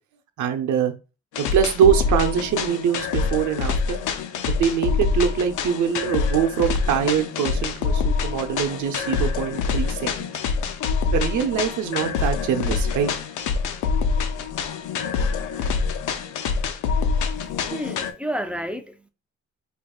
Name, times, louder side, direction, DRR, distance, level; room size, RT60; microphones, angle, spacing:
voice 1, 0.4-0.9 1.4-4.0 4.5-10.1 11.1-13.1, right 8 dB, 75° right, 0.8 m, -23 dB
sound 1, 1.3-18.1, left 5 dB, 80° left, 0.6 m, -25 dB
voice 2, 17.0-19.1, equal, 5° right, 0.5 m, -32 dB
5.0 x 2.7 x 2.4 m
cardioid pair, 90°, 30 cm